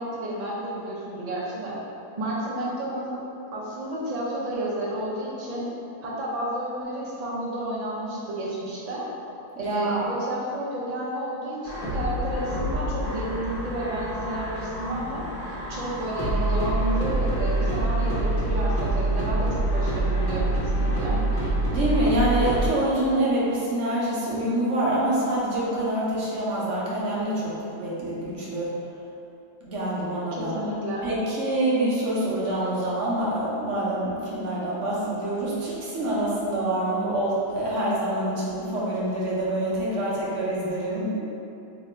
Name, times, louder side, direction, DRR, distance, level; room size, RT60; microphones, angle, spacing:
voice 1, 0.0-1.8 2.2-3.1 3.5-5.7 6.0-9.1 9.6-21.2 30.3-31.1, right 1 dB, 85° right, -7 dB, 0.3 m, -31 dB
voice 2, 9.6-10.1 21.7-28.7 29.6-30.5 31.0-41.2, right 1 dB, 55° right, -7 dB, 1.0 m, -26 dB
sound 1, 11.6-22.7, right 1 dB, 40° left, 1.0 m, -26 dB
2.9 x 2.6 x 4.3 m, 2.7 s
omnidirectional pair, 1.7 m